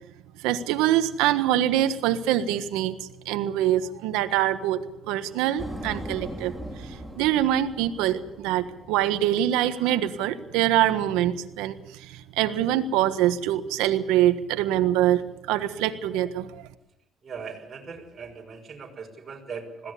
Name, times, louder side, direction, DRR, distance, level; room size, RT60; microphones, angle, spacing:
voice 1, 0.4-16.7, right 12 dB, 85° right, 9 dB, 1.5 m, -24 dB
sound 1, 5.6-9.3, equal, 5° left, 3.8 m, -39 dB
voice 2, 17.2-19.9, right 5 dB, 35° right, 0 dB, 5.9 m, -39 dB
21.0 x 16.5 x 8.6 m, 0.88 s
supercardioid pair, 80°, 0 cm